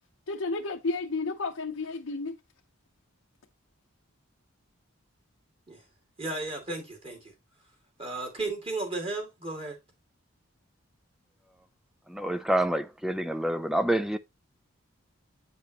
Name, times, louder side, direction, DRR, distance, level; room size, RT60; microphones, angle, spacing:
voice 1, 0.3-2.4, left 3 dB, 70° left, 0.7 m, -32 dB
voice 2, 6.2-7.3 8.0-9.8, right 2 dB, 25° right, 2.4 m, -34 dB
voice 3, 12.1-14.2, right 1 dB, ahead, 0.3 m, -27 dB
9.0 x 5.2 x 2.9 m
head